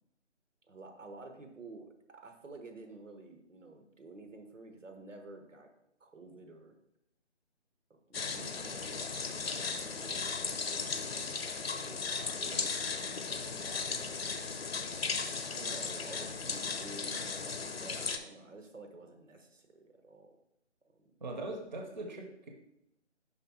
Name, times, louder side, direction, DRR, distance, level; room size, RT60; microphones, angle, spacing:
voice 1, 0.7-5.7 6.0-6.7 7.9-11.0 11.3-14.4 15.4-20.4 20.8-21.1, right 2 dB, 85° right, 4 dB, 1.4 m, -51 dB
sound 1, 8.1-18.2, left 5 dB, 55° left, 0.7 m, -36 dB
voice 2, 21.2-22.5, right 2 dB, 40° right, 2 dB, 0.9 m, -40 dB
5.6 x 3.9 x 5.5 m, 0.82 s
figure-of-eight pair, 160°, 36 cm